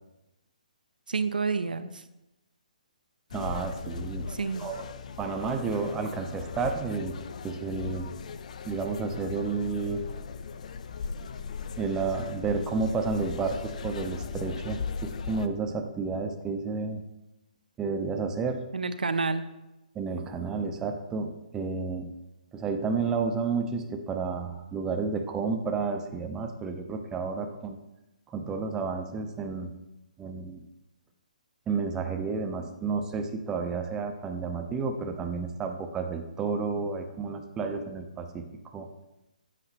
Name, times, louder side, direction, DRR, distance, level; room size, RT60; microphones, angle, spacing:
voice 1, 1.1-2.0 4.3-4.7 18.7-19.5, right 4 dB, 85° right, 11 dB, 0.4 m, -29 dB
sound 1, 3.3-15.5, left 5 dB, 55° left, 0.4 m, -38 dB
voice 2, 3.3-4.3 4.6-4.8 5.2-8.1 8.7-10.1 11.8-17.0 17.8-18.6 20.0-22.2 22.5-27.8 28.3-29.7 30.2-30.6 31.7-38.5 38.7-38.9, right 4 dB, 15° right, 5 dB, 0.5 m, -31 dB
7.9 x 4.8 x 2.9 m, 0.95 s
figure-of-eight pair, 140°, 5 cm